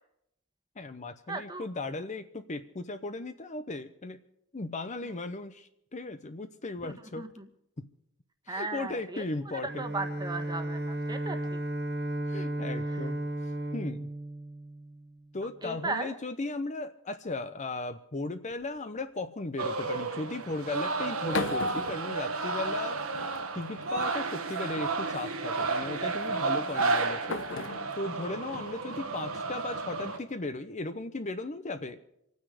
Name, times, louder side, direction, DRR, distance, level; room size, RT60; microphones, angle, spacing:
voice 1, 0.8-4.2 4.5-7.3 7.8-7.9 8.5-9.8 12.3-13.2 13.7-14.1 15.3-23.0 23.5-27.4 27.9-32.0, left 2 dB, 35° left, 9 dB, 0.7 m, -36 dB
voice 2, 1.3-1.6 6.8-7.4 8.5-11.6 12.9-13.0 15.6-16.1, right 3 dB, 20° right, 6 dB, 1.4 m, -37 dB
Bowed string instrument, 9.6-15.2, right 1 dB, 45° right, 1.3 m, -34 dB
sound 1, 18.5-19.0 20.9-22.8 23.2-23.9 24.9-25.2 26.4-29.7, left 3 dB, 60° left, 1.0 m, -40 dB
sound 2, 19.6-30.2, right 3 dB, 70° right, 1.5 m, -32 dB
28.0 x 9.4 x 4.9 m, 0.79 s
head